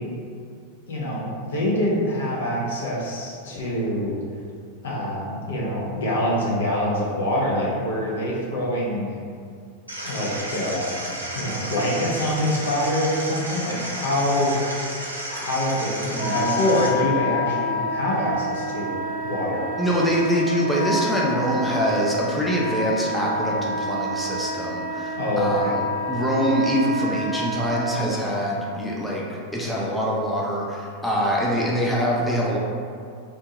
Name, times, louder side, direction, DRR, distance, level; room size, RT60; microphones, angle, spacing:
voice 1, 0.9-4.2 4.8-9.2 10.1-14.6 15.3-19.6 25.2-25.7, left 1 dB, 60° left, -5 dB, 0.6 m, -25 dB
sound 1, 9.9-16.9, right 1 dB, 80° right, 0.5 m, -32 dB
Wind instrument woodwind instrument, 16.2-28.0, left 1 dB, 30° right, 0.7 m, -28 dB
voice 2, 19.8-25.8 26.1-32.6, equal, 5° left, -5 dB, 0.4 m, -24 dB
2.6 x 2.2 x 2.8 m, 2.2 s
figure-of-eight pair, 90°, 0 cm